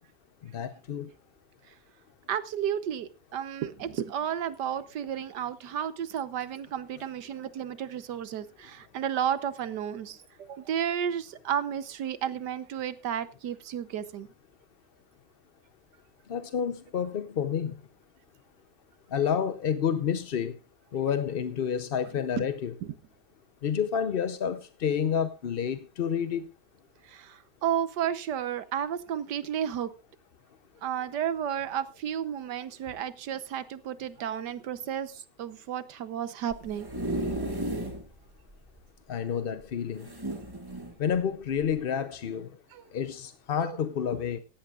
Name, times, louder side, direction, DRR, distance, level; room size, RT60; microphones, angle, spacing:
voice 1, 0.5-1.1 16.3-17.7 19.1-20.6 20.9-22.7 23.6-26.4 39.1-40.1 41.0-42.5 42.9-44.4, left 8 dB, 50° left, 0.7 m, -29 dB
voice 2, 2.3-14.3 22.4-22.5 22.8-22.9 27.1-29.9 30.8-36.9 42.7-42.8 43.6-43.8, right 9 dB, 85° right, 1.6 m, -32 dB
sound 1, 36.5-38.0 38.5-38.6 38.8-38.9 40.0-40.9 41.6-41.8, right 1 dB, 15° right, 2.0 m, -33 dB
17.0 x 14.5 x 2.4 m
omnidirectional pair, 1.8 m